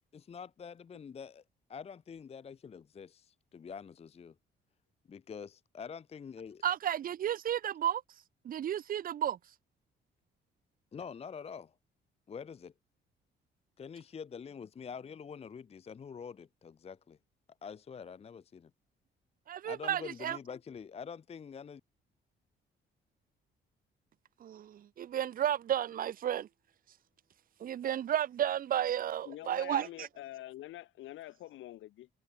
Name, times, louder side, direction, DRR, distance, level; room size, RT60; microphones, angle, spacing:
voice 1, 0.1-1.4 1.7-4.3 5.1-6.6 10.9-11.7 12.3-12.7 13.8-17.2 17.6-18.7 19.6-21.8, left 6 dB, 30° left, 0.5 m, -46 dB
voice 2, 6.6-8.0 8.4-9.4 19.5-20.4 24.4-26.5 27.6-30.1, right 10 dB, 45° right, 0.5 m, -32 dB
voice 3, 29.2-32.1, left 15 dB, 80° left, 0.8 m, -46 dB
cardioid pair, 90°, 20 cm